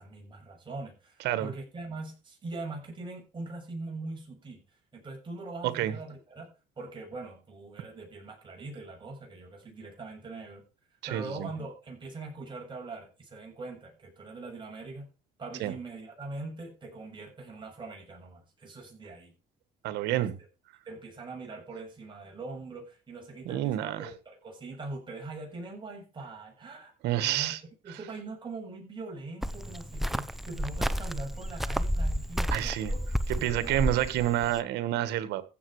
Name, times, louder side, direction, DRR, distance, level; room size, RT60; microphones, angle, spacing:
voice 1, 0.0-4.6 4.9-6.5 6.8-10.6 11.1-15.1 15.4-19.3 20.2-20.3 20.9-27.5 27.8-33.1 33.5-34.4, right 3 dB, 30° right, 7.0 m, -42 dB
voice 2, 5.6-5.9 11.1-11.5 15.6-15.7 19.8-20.4 23.5-24.1 27.0-27.6 32.5-32.9 33.3-35.4, right 13 dB, 85° right, 1.7 m, -28 dB
Cricket, 29.4-34.6, equal, ahead, 0.7 m, -31 dB
15.0 x 7.5 x 5.0 m
cardioid pair, 110°, 17 cm